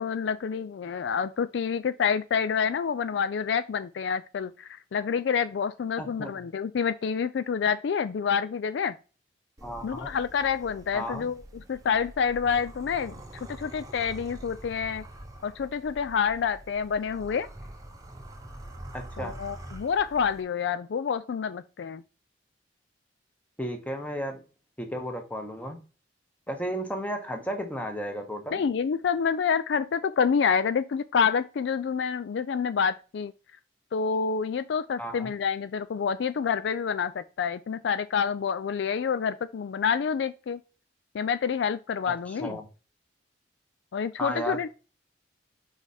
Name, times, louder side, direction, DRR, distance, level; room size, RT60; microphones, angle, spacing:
voice 1, 0.0-8.9 9.8-11.4 11.7-13.2 13.5-15.0 15.4-17.5 19.2-22.0 28.5-33.3 33.9-40.6 41.1-42.6 43.9-44.7, left 6 dB, 70° left, 0.3 m, -28 dB
voice 2, 6.0-6.3 9.6-10.1 10.9-11.3 18.9-19.4 23.6-24.4 24.8-25.8 26.5-28.6 35.0-35.3 42.0-42.7 44.2-44.7, equal, 10° left, 1.1 m, -34 dB
sound 1, 9.6-20.4, right 1 dB, 20° right, 0.8 m, -45 dB
4.9 x 4.8 x 4.2 m
head